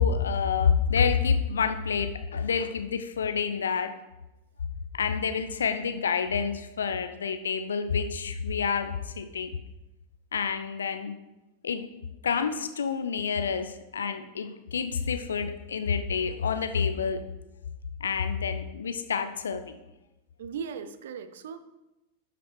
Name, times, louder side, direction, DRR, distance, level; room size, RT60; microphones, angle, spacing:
voice 1, 0.0-3.9 5.0-9.5 10.3-11.1 11.6-11.8 12.2-17.2 18.0-19.7, left 6 dB, 70° left, 8 dB, 0.6 m, -28 dB
voice 2, 20.4-21.6, right 6 dB, 60° right, 12 dB, 0.5 m, -37 dB
12.0 x 5.0 x 3.2 m, 0.98 s
figure-of-eight pair, 90°, 0 cm